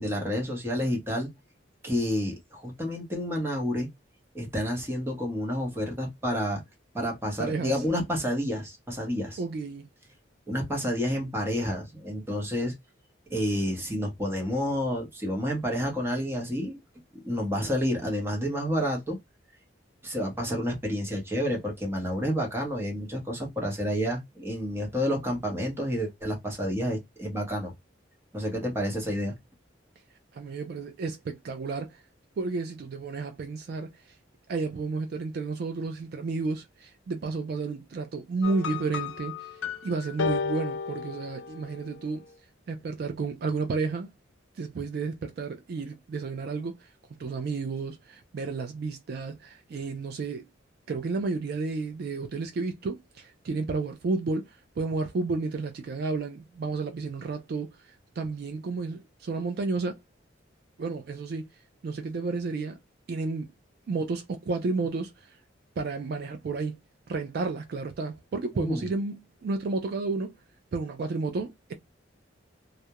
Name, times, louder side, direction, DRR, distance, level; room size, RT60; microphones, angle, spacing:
voice 1, 0.0-1.3 1.8-3.9 4.3-6.6 6.9-9.4 10.5-12.7 13.3-16.8 17.2-19.2 20.0-27.7 28.3-29.3 68.6-68.9, equal, 15° right, 0.7 m, -29 dB
voice 2, 7.4-7.8 9.4-9.8 30.3-32.0 32.4-34.1 34.5-42.2 42.7-44.1 44.6-46.9 47.2-50.5 50.9-60.0 60.8-61.5 61.8-62.8 63.1-63.5 63.9-65.4 65.8-66.8 67.1-70.3 70.7-71.7, right 3 dB, 55° right, 0.3 m, -32 dB
sound 1, 38.4-41.8, left 5 dB, 90° left, 0.5 m, -33 dB
2.2 x 2.0 x 2.8 m
head